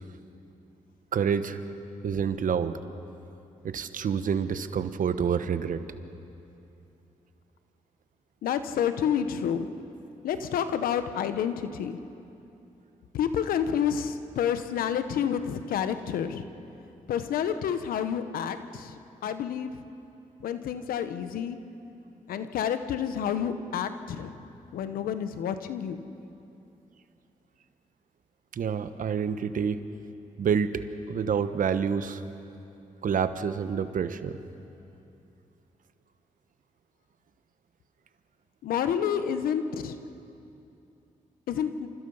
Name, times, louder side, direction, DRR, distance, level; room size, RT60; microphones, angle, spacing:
voice 1, 1.1-1.6 2.0-2.7 3.6-5.8 28.5-29.8 30.4-30.7 31.1-32.2 33.0-34.4, right 7 dB, 70° right, 11 dB, 1.2 m, -27 dB
voice 2, 8.4-9.7 10.2-12.0 13.1-16.4 17.1-18.9 19.2-19.7 20.4-21.6 22.3-24.4 24.7-26.0 38.6-40.0 41.5-41.9, left 8 dB, 85° left, 10 dB, 1.1 m, -29 dB
28.5 x 27.0 x 5.7 m, 2.8 s
supercardioid pair, 55°, 14 cm